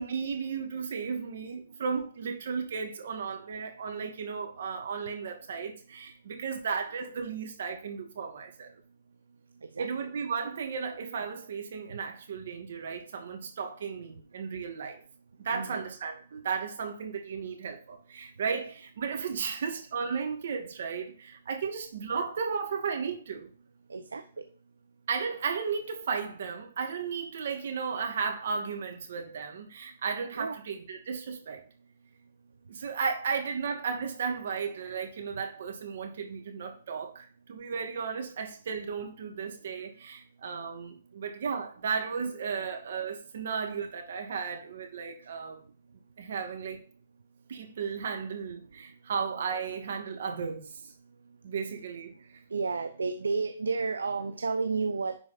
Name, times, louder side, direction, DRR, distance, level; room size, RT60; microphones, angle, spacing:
voice 1, 0.0-8.7 9.8-15.0 15.4-23.5 25.1-31.6 32.7-45.6 46.2-46.8 47.5-50.9 51.4-52.4, right 5 dB, 60° right, 2.5 m, -34 dB
voice 2, 15.5-15.8 23.9-24.4 30.3-30.6 52.5-55.2, right 4 dB, 85° right, 0.8 m, -31 dB
10.5 x 4.7 x 4.5 m
hypercardioid pair, 140°, 0 cm